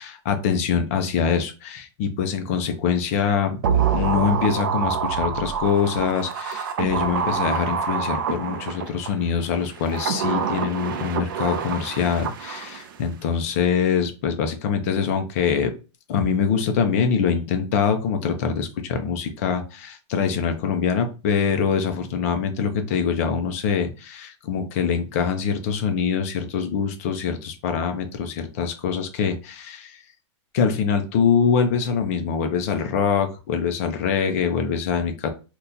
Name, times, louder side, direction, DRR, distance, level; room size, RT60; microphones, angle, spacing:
voice 1, 0.0-15.7 16.1-30.0 30.5-35.3, left 6 dB, 30° left, 6 dB, 0.4 m, -24 dB
sound 1, 3.6-9.1 9.7-13.0 13.2-13.3, right 7 dB, 45° right, 0.4 m, -26 dB
2.9 x 2.2 x 3.7 m, 0.32 s
supercardioid pair, 175°, 16 cm